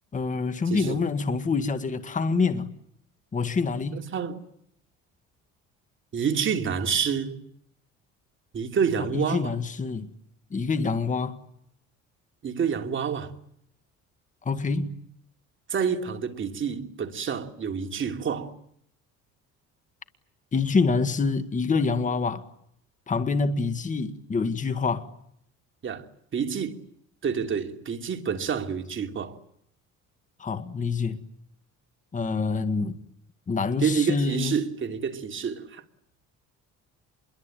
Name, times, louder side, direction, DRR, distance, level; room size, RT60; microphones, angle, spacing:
voice 1, 0.1-2.8 3.3-4.1 9.0-10.1 10.5-11.4 14.4-15.0 20.5-22.5 23.1-25.1 30.4-31.2 32.1-33.0 33.5-34.6, left 4 dB, 25° left, 1.8 m, -26 dB
voice 2, 0.7-1.1 3.9-4.4 6.1-7.4 8.5-9.5 12.4-13.3 15.7-18.5 25.8-26.0 26.3-26.8 27.2-29.4 33.8-35.8, right 7 dB, 40° right, 3.0 m, -28 dB
28.0 x 22.5 x 9.0 m
cardioid pair, 130°, 31 cm